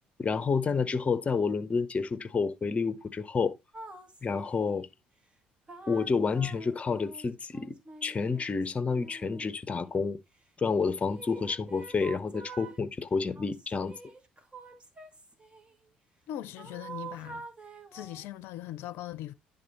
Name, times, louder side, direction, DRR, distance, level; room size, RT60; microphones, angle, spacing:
voice 1, 0.2-3.5 4.2-4.9 5.9-10.2 10.6-13.9, left 5 dB, 30° left, 0.9 m, -29 dB
sound 1, 3.7-4.9 5.7-10.0 11.1-12.8 13.3-15.7 16.6-18.4, right 3 dB, 25° right, 1.9 m, -47 dB
voice 2, 16.3-17.5 17.9-19.3, left 13 dB, 65° left, 0.6 m, -40 dB
10.5 x 3.8 x 4.2 m
hypercardioid pair, 60°, 4 cm